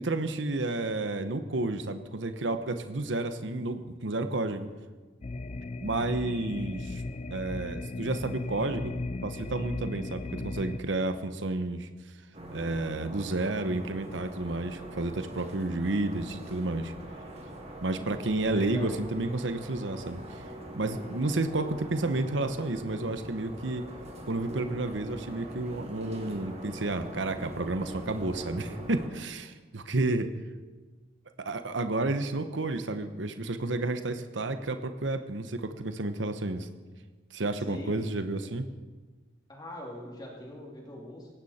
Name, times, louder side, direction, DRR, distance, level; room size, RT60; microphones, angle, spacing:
voice 1, 0.0-4.7 5.8-7.0 7.3-8.9 9.2-11.9 12.5-16.9 17.8-20.4 20.8-23.8 24.3-30.3 31.4-36.7 37.3-38.7, right 2 dB, 90° right, 9 dB, 1.0 m, -31 dB
sound 1, 5.2-10.8, left 2 dB, 35° left, 0.5 m, -36 dB
sound 2, 12.3-29.1, right 1 dB, 35° right, 2.3 m, -43 dB
voice 2, 18.5-18.9 37.7-38.1 39.5-41.3, left 1 dB, 20° left, -1 dB, 2.8 m, -42 dB
18.5 x 16.5 x 4.3 m, 1.3 s
head